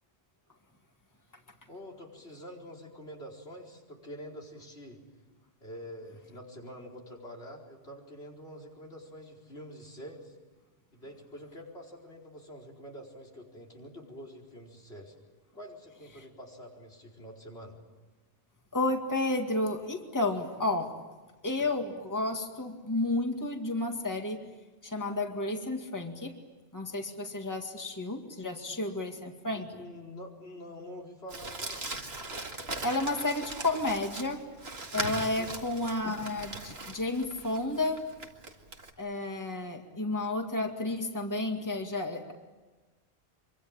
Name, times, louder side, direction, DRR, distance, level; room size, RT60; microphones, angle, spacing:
voice 1, 1.7-5.0 5.6-10.3 10.9-15.1 15.5-17.8 29.5-31.9 35.4-35.6, equal, 80° left, 2 dB, 4.8 m, -46 dB
voice 2, 18.7-20.9 21.4-24.4 24.8-26.4 26.7-29.6 32.8-34.5 34.9-38.1 39.0-42.3, left 2 dB, 15° left, 3 dB, 2.1 m, -31 dB
Crumpling crinkling, 31.3-38.9, right 2 dB, 75° right, 2.6 m, -40 dB
26.0 x 24.0 x 8.9 m, 1.2 s
omnidirectional pair, 1.1 m